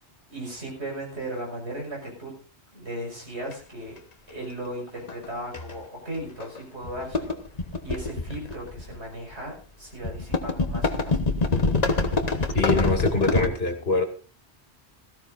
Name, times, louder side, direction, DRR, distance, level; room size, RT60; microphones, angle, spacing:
voice 1, 0.3-2.3 2.7-4.0 4.3-11.2, right 1 dB, 80° right, -1 dB, 5.7 m, -36 dB
sound 1, 3.5-3.6 5.1-5.2 5.5-5.8 6.4-6.6 6.8-9.0 10.0-13.5, left 3 dB, 40° left, 1.2 m, -25 dB
voice 2, 12.5-14.0, left 2 dB, 65° left, 5 dB, 2.5 m, -24 dB
18.0 x 15.0 x 2.6 m, 0.34 s
omnidirectional pair, 1.1 m